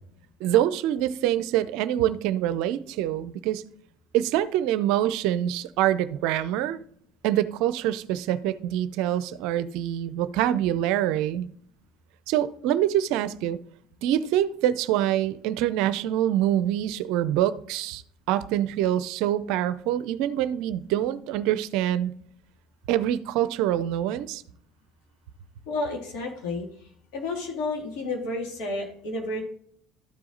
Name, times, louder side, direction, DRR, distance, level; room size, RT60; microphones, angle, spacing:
voice 1, 0.4-3.6 4.1-6.8 7.2-11.5 12.3-13.6 14.0-18.0 18.3-22.1 22.9-24.4, right 12 dB, 70° right, 0.5 m, -25 dB
voice 2, 25.7-26.7 27.1-29.4, left 2 dB, 70° left, 2.5 m, -31 dB
12.5 x 4.8 x 3.9 m
hypercardioid pair, 65°, 0 cm